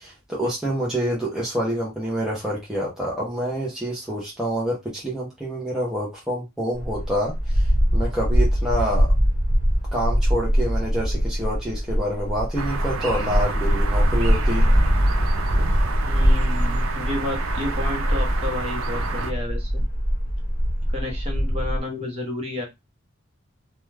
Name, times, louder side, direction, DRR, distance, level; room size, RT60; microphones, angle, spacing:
voice 1, 0.0-9.1 9.9-14.7, equal, 5° right, 0.7 m, -27 dB
sound 1, 6.7-21.8, equal, 35° left, 1.1 m, -22 dB
sound 2, 12.6-19.3, right 2 dB, 75° right, 0.5 m, -29 dB
voice 2, 16.0-19.8 20.9-22.6, left 2 dB, 30° right, 0.9 m, -31 dB
2.3 x 2.3 x 3.2 m
head